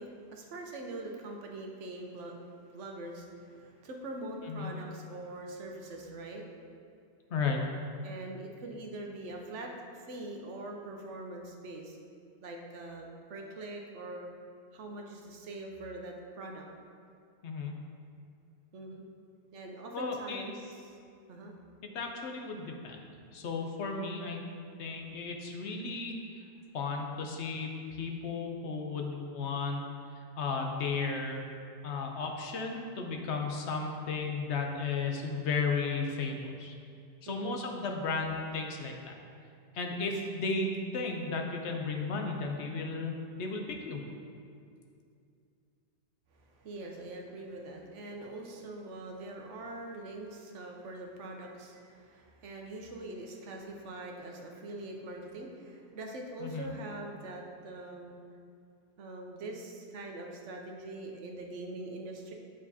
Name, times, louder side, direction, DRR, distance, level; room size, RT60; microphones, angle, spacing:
voice 1, 0.0-6.7 8.0-12.0 12.4-14.3 14.7-16.6 18.7-19.1 19.5-21.0 21.3-21.6 37.2-37.6 46.3-58.2 59.0-62.3, right 2 dB, 80° right, 1 dB, 1.1 m, -43 dB
voice 2, 17.4-17.7 19.9-20.4 21.9-23.0 23.3-24.4 24.8-26.4 26.7-29.8 30.2-31.4 31.8-36.7 37.2-39.1 39.7-44.0 56.4-56.7, left 4 dB, 70° left, 2 dB, 1.0 m, -34 dB
9.2 x 5.0 x 2.8 m, 2.4 s
omnidirectional pair, 1.2 m